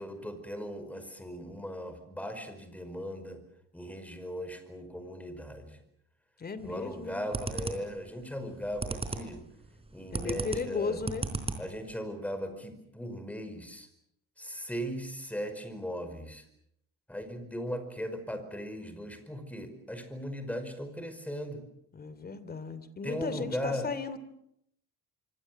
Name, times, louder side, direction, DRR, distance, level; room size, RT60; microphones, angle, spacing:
voice 1, 0.0-3.4 3.7-5.8 6.6-9.4 9.9-11.0 11.6-13.9 14.4-16.4 17.1-21.6 23.0-23.9, equal, 5° left, 9 dB, 5.2 m, -38 dB
voice 2, 6.4-7.3 10.1-11.3 21.9-24.2, left 4 dB, 25° left, 14 dB, 2.9 m, -36 dB
sound 1, 6.6-6.9 7.3-8.0 8.4-9.4 9.6-11.9, right 3 dB, 15° right, 4.1 m, -35 dB
26.5 x 25.0 x 7.7 m, 0.76 s
cardioid pair, 130°, 34 cm